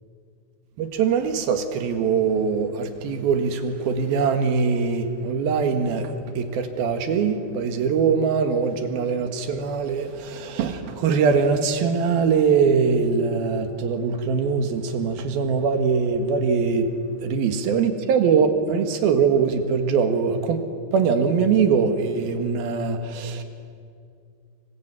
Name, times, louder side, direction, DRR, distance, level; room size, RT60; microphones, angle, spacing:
voice 1, 0.8-16.9 17.2-20.6 20.9-23.4, right 5 dB, 70° right, 7 dB, 3.4 m, -22 dB
26.5 x 22.0 x 9.0 m, 2.4 s
omnidirectional pair, 4.7 m